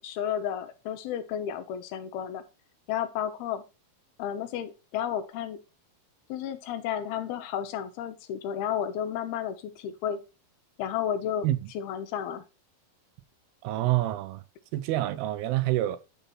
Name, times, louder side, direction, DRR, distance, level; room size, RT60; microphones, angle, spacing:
voice 1, 0.0-2.4 2.9-3.6 4.2-5.6 6.3-10.2 10.8-11.5 11.7-12.4, left 9 dB, 85° left, 2.9 m, -32 dB
voice 2, 13.6-14.4 14.7-16.0, right 15 dB, 85° right, 2.7 m, -27 dB
9.2 x 4.1 x 5.4 m
omnidirectional pair, 4.4 m